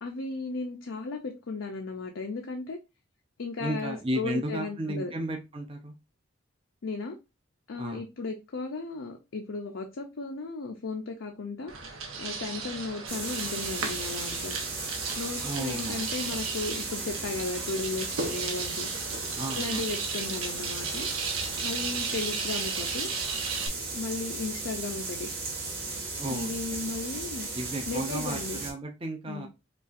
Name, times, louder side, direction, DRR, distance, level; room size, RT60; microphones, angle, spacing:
voice 1, 0.0-2.8 3.4-5.1 6.8-7.2 7.7-11.7 12.2-14.6 15.2-18.9 19.5-21.1 21.6-23.1 23.9-25.3 26.3-27.5 27.9-28.6 29.2-29.5, left 3 dB, 70° left, 0.5 m, -35 dB
voice 2, 3.6-5.9 7.8-8.0 15.4-16.1 19.4-19.9 26.1-26.8 27.5-29.5, right 1 dB, 25° right, 0.5 m, -34 dB
sound 1, 11.7-23.7, right 5 dB, 90° right, 0.9 m, -35 dB
sound 2, 13.1-28.7, right 3 dB, 45° right, 1.9 m, -36 dB
5.3 x 2.4 x 2.4 m
head